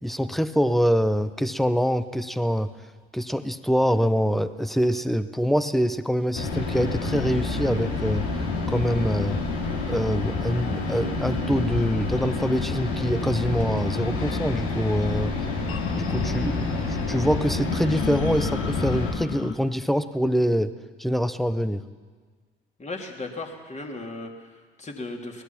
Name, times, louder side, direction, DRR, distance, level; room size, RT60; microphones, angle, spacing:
voice 1, 0.0-2.7 3.1-8.3 8.7-9.4 9.9-15.3 15.9-20.7 21.0-21.8, equal, ahead, 13 dB, 1.0 m, -25 dB
sound 1, 6.3-19.1, left 3 dB, 65° left, 3.2 m, -28 dB
sound 2, 9.5-19.5, left 8 dB, 45° left, 1.4 m, -39 dB
voice 2, 22.8-25.4, left 2 dB, 25° left, 2 dB, 3.3 m, -36 dB
23.5 x 19.5 x 6.0 m, 1.5 s
figure-of-eight pair, 50°, 30 cm